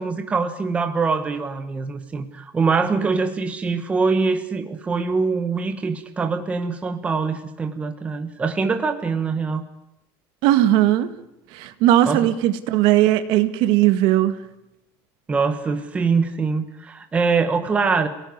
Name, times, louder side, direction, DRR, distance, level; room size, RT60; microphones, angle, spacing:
voice 1, 0.0-9.6 12.0-12.3 15.3-18.1, right 4 dB, 15° right, 7 dB, 1.4 m, -23 dB
voice 2, 10.4-11.1 11.5-14.4, right 13 dB, 55° right, 10 dB, 1.9 m, -18 dB
28.5 x 18.0 x 9.6 m, 0.88 s
cardioid pair, 180°, 9 cm